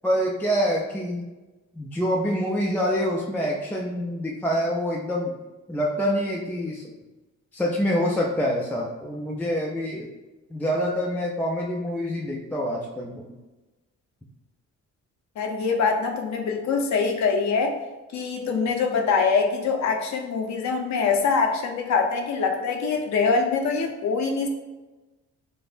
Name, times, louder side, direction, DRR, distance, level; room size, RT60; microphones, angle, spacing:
voice 1, 0.0-1.2 1.8-5.3 5.7-6.8 7.5-10.1 10.5-13.2, equal, 5° left, -3 dB, 0.4 m, -26 dB
voice 2, 15.4-17.8 18.1-24.5, left 5 dB, 65° left, 3 dB, 0.7 m, -24 dB
5.3 x 2.0 x 2.5 m, 1.1 s
cardioid pair, 90°, 30 cm